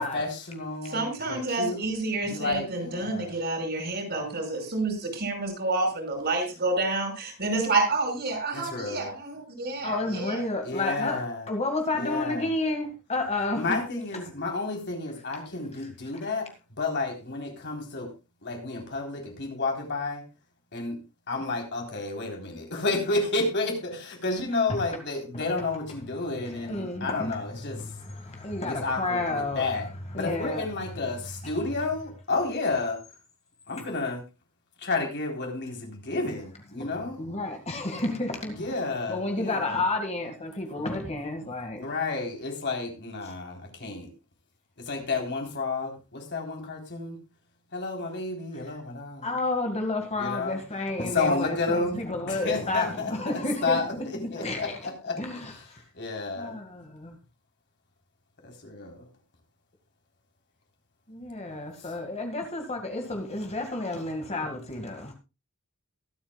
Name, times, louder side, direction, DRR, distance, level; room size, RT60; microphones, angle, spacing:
voice 1, 0.0-1.9 2.2-3.4 8.5-9.1 10.6-11.5 12.0-12.5 13.5-18.1 18.4-20.2 20.7-21.0 21.3-27.8 28.6-29.9 30.1-33.0 33.7-34.2 34.8-37.2 38.5-39.8 41.8-44.1 44.8-47.2 47.7-49.3 50.2-50.6 51.0-52.0 52.2-53.9 54.3-55.2 55.9-56.6 58.4-59.1 61.8-61.9, left 3 dB, 50° left, 3.8 m, -31 dB
voice 2, 0.9-10.4, right 2 dB, 50° right, 5.6 m, -29 dB
voice 3, 9.8-11.2 11.5-13.8 24.7-24.8 26.4-27.4 27.7-29.7 30.1-30.6 36.8-36.9 37.2-38.8 39.1-41.8 49.2-54.8 55.2-55.8 56.4-57.2 61.1-65.1, left 2 dB, 30° left, 1.9 m, -31 dB
23.0 x 8.8 x 2.3 m
head